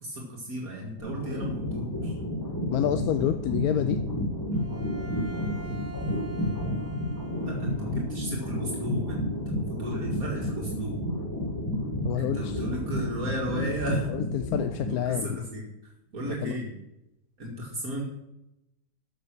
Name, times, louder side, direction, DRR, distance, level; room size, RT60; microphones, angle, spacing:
voice 1, 0.0-2.2 7.4-11.0 12.1-14.1 14.9-15.7 16.1-16.7 17.4-18.0, right 1 dB, 65° right, -2 dB, 2.5 m, -34 dB
sound 1, 1.0-15.2, left 1 dB, 15° left, 2.3 m, -31 dB
voice 2, 2.7-4.0 12.0-12.6 14.3-15.4 16.3-16.6, left 11 dB, 80° left, 10 dB, 1.1 m, -28 dB
Bowed string instrument, 4.5-8.0, right 4 dB, 35° right, 0.9 m, -46 dB
13.0 x 6.8 x 6.1 m, 0.89 s
omnidirectional pair, 1.6 m